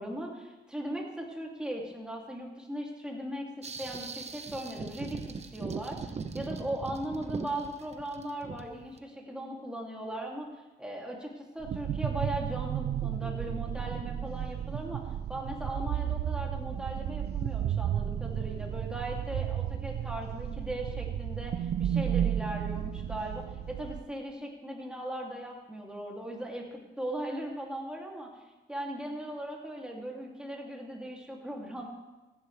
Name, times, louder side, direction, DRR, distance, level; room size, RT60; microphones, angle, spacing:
voice 1, 0.0-3.5 3.8-5.2 5.5-10.5 10.8-15.0 15.3-28.3 28.7-31.9, right 1 dB, 5° right, -1 dB, 2.9 m, -38 dB
sound 1, 3.6-9.0, right 4 dB, 35° right, 0.9 m, -40 dB
sound 2, 11.6-24.0, right 10 dB, 55° right, 0.6 m, -33 dB
15.0 x 10.5 x 3.5 m, 1.2 s
cardioid pair, 90°, 20 cm